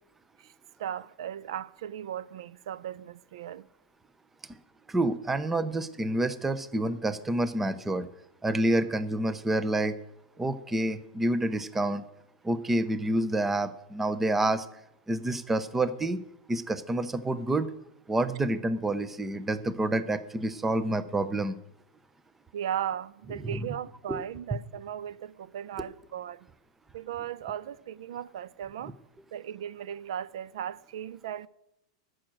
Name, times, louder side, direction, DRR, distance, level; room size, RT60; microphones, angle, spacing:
voice 1, 0.8-3.7 22.5-26.5 26.9-29.0 29.3-31.5, right 10 dB, 65° right, 0.4 m, -37 dB
voice 2, 4.9-8.1 8.4-10.0 10.4-12.0 12.4-14.7 15.1-16.2 16.5-17.7 18.1-21.6 23.4-23.7 24.1-24.2, right 1 dB, 10° right, 0.5 m, -28 dB
13.5 x 6.2 x 7.6 m
supercardioid pair, 155°, 3 cm